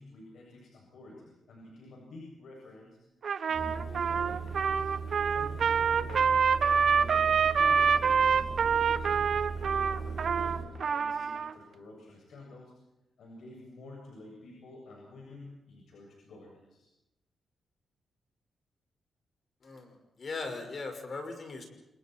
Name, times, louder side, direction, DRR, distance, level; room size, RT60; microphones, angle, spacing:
voice 1, 0.0-3.0 3.5-4.9 5.3-6.6 6.9-9.3 9.6-12.7 13.2-16.9, left 2 dB, 65° left, -1 dB, 7.6 m, -50 dB
Trumpet, 3.2-11.5, right 6 dB, 50° right, 1.3 m, -26 dB
sound 1, 3.5-10.7, right 5 dB, 30° right, 7.1 m, -38 dB
voice 2, 20.2-21.6, left 3 dB, 35° left, 5 dB, 5.8 m, -38 dB
30.0 x 28.0 x 4.6 m, 0.92 s
wide cardioid pair, 170°, 0 cm